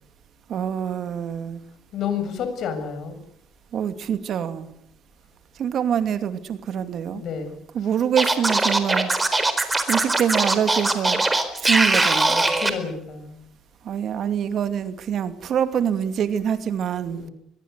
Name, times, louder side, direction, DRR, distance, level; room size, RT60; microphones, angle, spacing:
voice 1, 0.5-1.6 3.7-4.7 5.6-7.2 7.7-9.1 9.9-11.2 11.6-12.5 13.8-17.2, right 8 dB, 55° right, 10 dB, 2.5 m, -25 dB
voice 2, 1.9-3.2 7.1-7.6 12.6-13.4 17.1-17.3, left 7 dB, 60° left, 8 dB, 7.5 m, -30 dB
Scratching (performance technique), 8.2-12.7, right 2 dB, 15° right, 4.2 m, -21 dB
23.5 x 21.5 x 8.2 m, 0.74 s
cardioid pair, 105°, 0 cm